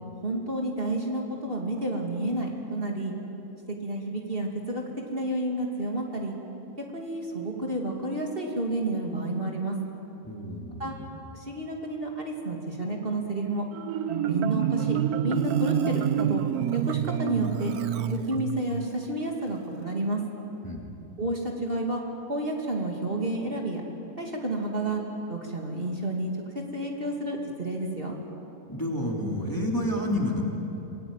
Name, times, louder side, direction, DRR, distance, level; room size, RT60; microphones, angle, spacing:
voice 1, 0.2-3.1 3.8-4.8 5.1-6.3 6.9-9.7 10.8-10.9 11.3-13.6 14.3-16.4 16.7-17.7 18.1-20.2 21.2-22.0 22.3-23.8 24.2-25.0 25.3-26.3 26.7-28.1, right 1 dB, 40° right, 0 dB, 2.9 m, -30 dB
voice 2, 10.2-11.1 20.6-20.9 28.7-30.4, left 1 dB, 15° left, -1 dB, 3.1 m, -30 dB
Marimba xylophone, 13.7-18.8, right 10 dB, 85° right, 1.3 m, -28 dB
26.0 x 21.0 x 9.0 m, 2.9 s
omnidirectional pair, 1.5 m